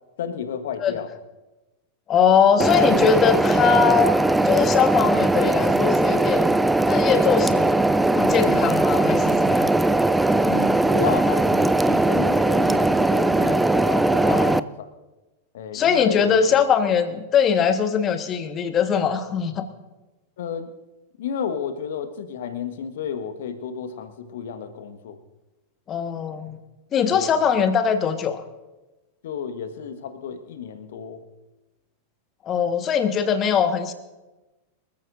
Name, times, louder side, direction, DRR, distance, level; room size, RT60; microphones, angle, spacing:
voice 1, 0.2-1.1 2.6-2.7 10.4-14.9 15.5-16.4 20.4-20.7 21.2-25.2 27.1-27.4 29.2-31.2, left 7 dB, 60° left, 8 dB, 1.5 m, -32 dB
voice 2, 2.1-4.1 4.4-6.5 6.8-7.8 8.1-9.7 14.3-14.6 15.7-19.7 25.9-26.6 26.9-28.4 32.4-33.9, left 7 dB, 30° left, 8 dB, 1.4 m, -21 dB
sound 1, 2.6-14.6, right 2 dB, 5° right, 0.4 m, -20 dB
25.0 x 14.5 x 2.6 m, 1.1 s
figure-of-eight pair, 90°, 0 cm